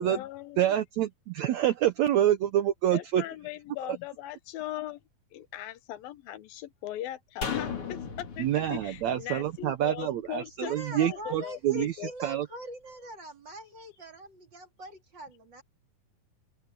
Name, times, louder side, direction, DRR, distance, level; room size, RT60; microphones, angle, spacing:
voice 1, 0.0-0.7 2.9-5.0 5.3-10.7 11.0-12.1, left 13 dB, 90° left, 2.9 m, -39 dB
voice 2, 0.6-3.2 8.4-11.9 12.2-12.5, right 11 dB, 70° right, 1.7 m, -27 dB
sound 1, 7.4-10.7 11.0-11.1, left 6 dB, 40° left, 3.4 m, -37 dB
voice 3, 10.6-15.6, right 1 dB, 35° right, 3.1 m, -43 dB
open air
omnidirectional pair, 4.0 m